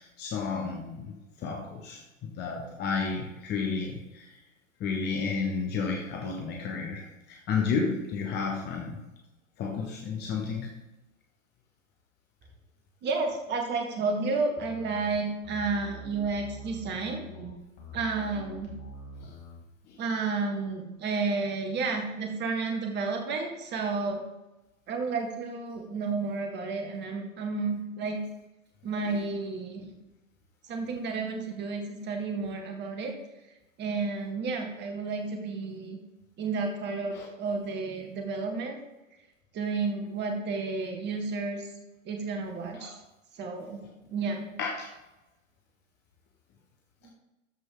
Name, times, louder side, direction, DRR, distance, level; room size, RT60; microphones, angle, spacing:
voice 1, 0.0-4.4 4.8-9.0 9.6-10.7 19.2-19.3 19.9-20.0 37.1-37.3 42.8-42.9 44.6-44.9, left 5 dB, 25° left, 0 dB, 1.4 m, -32 dB
voice 2, 13.0-17.5 17.9-18.7 20.0-24.2 24.9-28.2 28.8-29.8 30.7-33.1 33.8-36.0 36.4-38.8 39.5-41.7 42.1-42.9 43.3-43.8 44.1-44.5, right 4 dB, 25° right, 3 dB, 1.9 m, -31 dB
sound 1, 14.6-19.6, left 1 dB, 40° left, 2.5 m, -45 dB
13.5 x 5.2 x 4.0 m, 1.0 s
figure-of-eight pair, 110°, 40 cm